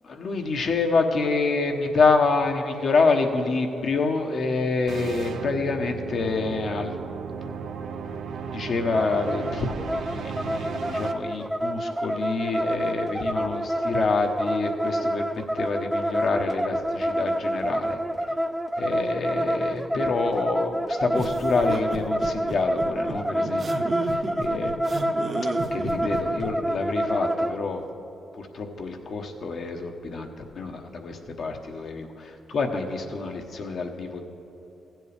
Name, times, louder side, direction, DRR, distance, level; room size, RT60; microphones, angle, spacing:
voice 1, 0.1-7.0 7.4-7.6 8.1-8.2 8.5-15.3 15.5-18.0 18.3-18.4 18.8-24.7 25.7-27.9 28.3-34.2, left 4 dB, 65° left, 4 dB, 1.0 m, -27 dB
sound 1, 4.9-11.1, right 6 dB, 70° right, 0.5 m, -35 dB
sound 2, 8.9-27.6, equal, 10° right, 0.4 m, -27 dB
sound 3, 21.1-26.5, right 3 dB, 50° right, 0.9 m, -32 dB
15.5 x 7.5 x 3.4 m, 3.0 s
supercardioid pair, 55°, 0 cm